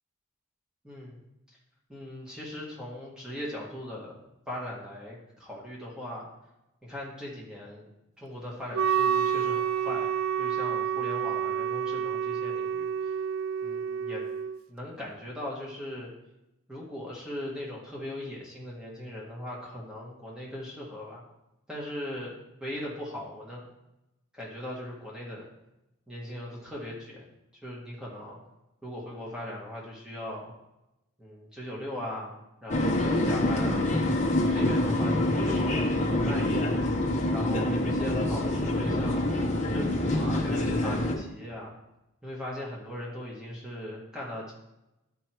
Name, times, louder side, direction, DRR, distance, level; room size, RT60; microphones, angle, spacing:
voice 1, 0.8-1.2 1.9-6.3 6.8-7.9 8.2-13.1 13.6-14.3 14.7-16.1 16.7-21.2 21.7-22.3 22.6-23.6 24.3-25.5 26.1-27.3 27.6-28.4 28.8-30.5 31.2-32.4 32.6-33.9 34.5-36.8 37.3-39.3 39.7-41.7 42.2-44.5, left 1 dB, 5° right, -5 dB, 1.8 m, -39 dB
Wind instrument woodwind instrument, 8.7-14.6, right 8 dB, 75° right, 0.3 m, -29 dB
sound 1, 32.7-41.1, left 1 dB, 35° left, 1.0 m, -26 dB
11.0 x 4.6 x 4.6 m, 0.93 s
head